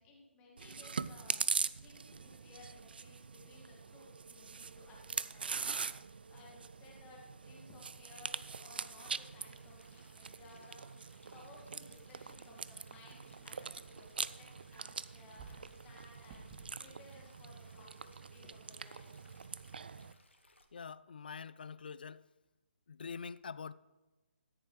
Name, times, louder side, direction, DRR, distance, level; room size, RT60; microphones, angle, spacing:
voice 1, 0.0-19.4, left 2 dB, 15° left, 2.2 m, -59 dB
Chewing mastication, 0.6-20.1, right 5 dB, 55° right, 0.4 m, -43 dB
Stream, 8.0-20.6, left 2 dB, 75° left, 1.4 m, -66 dB
sound 1, 11.6-16.7, right 4 dB, 20° right, 0.9 m, -60 dB
voice 2, 20.7-22.3 22.9-23.7, left 6 dB, 50° left, 0.3 m, -45 dB
13.5 x 10.0 x 3.3 m
figure-of-eight pair, 140°, 6 cm